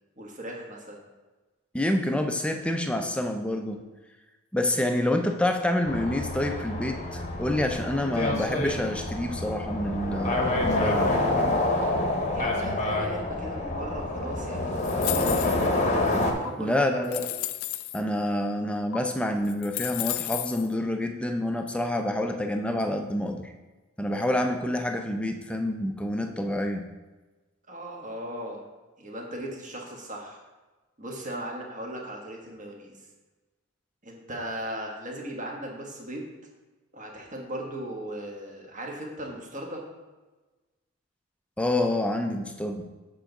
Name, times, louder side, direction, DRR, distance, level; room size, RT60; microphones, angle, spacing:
voice 1, 0.2-1.0 12.3-15.4 16.3-17.3 27.7-28.6 29.0-30.4 31.0-32.9 34.0-36.3 36.9-39.8, right 1 dB, 35° right, 0 dB, 1.3 m, -37 dB
voice 2, 1.7-3.8 4.5-11.1 16.6-17.3 17.9-23.5 24.0-26.9 41.6-42.9, left 1 dB, 5° left, 5 dB, 0.5 m, -27 dB
sound 1, 5.9-16.3, left 2 dB, 35° left, 0.9 m, -27 dB
sound 2, 14.8-15.8 16.5-16.6 17.0-18.0 18.9-19.0 19.4-20.7, left 16 dB, 75° left, 0.3 m, -33 dB
7.5 x 3.9 x 5.9 m, 1.2 s
head